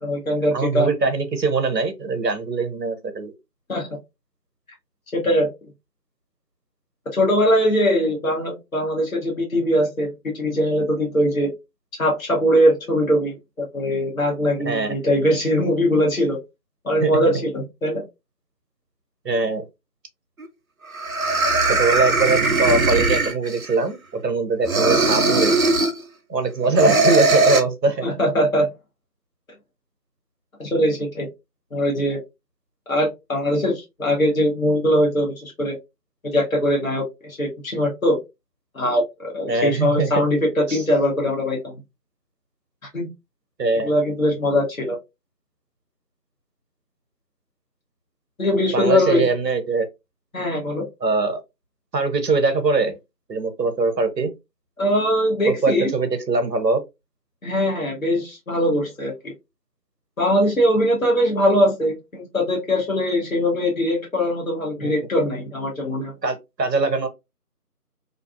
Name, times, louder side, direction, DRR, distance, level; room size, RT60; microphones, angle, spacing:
voice 1, 0.0-0.9 3.7-3.9 5.1-5.5 7.1-11.5 12.0-16.4 16.8-18.0 28.0-28.7 30.6-31.3 31.7-32.2 32.9-35.8 36.2-38.2 38.7-41.7 42.9-43.1 43.8-45.0 48.4-49.2 50.3-50.9 54.8-55.9 57.4-59.3 60.2-66.1, equal, 55° left, 1.0 m, -21 dB
voice 2, 0.5-3.3 14.6-14.9 17.0-17.1 19.2-19.6 21.6-25.6 26.3-28.1 39.5-40.3 40.7-40.8 43.6-43.9 48.7-49.9 51.0-51.4 51.9-52.9 53.3-54.3 55.5-56.8 64.8-64.9 66.2-67.1, right 3 dB, 85° right, 0.8 m, -22 dB
sound 1, 20.4-20.5 20.9-23.7 24.6-26.0 26.8-27.6, right 2 dB, 60° right, 0.5 m, -19 dB
2.5 x 2.4 x 2.4 m
figure-of-eight pair, 175°, 48 cm